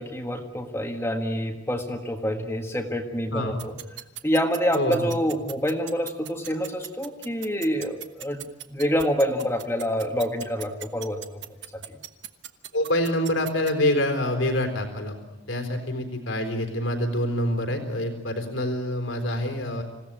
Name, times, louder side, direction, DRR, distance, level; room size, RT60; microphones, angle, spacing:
voice 1, 0.0-3.7 4.2-11.4, equal, 15° left, 2 dB, 1.7 m, -27 dB
sound 1, 3.6-13.7, right 11 dB, 60° right, 1.3 m, -37 dB
voice 2, 4.7-5.1 12.7-15.1 15.5-19.8, left 1 dB, 75° left, 5 dB, 3.9 m, -26 dB
27.0 x 17.0 x 9.0 m, 1.0 s
head